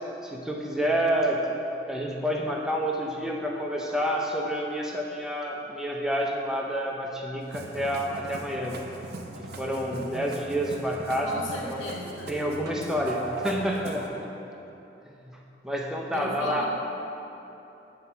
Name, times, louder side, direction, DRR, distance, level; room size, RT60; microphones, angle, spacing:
voice 1, 0.2-1.4 1.9-8.8 9.4-11.4 11.7-11.8 12.3-14.3 15.2-15.4 15.6-16.6, equal, 5° right, -1 dB, 0.5 m, -29 dB
Musical instrument, 7.4-14.1, right 2 dB, 55° right, 0.5 m, -39 dB
voice 2, 11.2-12.4 16.1-16.6, left 1 dB, 75° left, -1 dB, 0.9 m, -37 dB
7.7 x 2.8 x 5.5 m, 3.0 s
head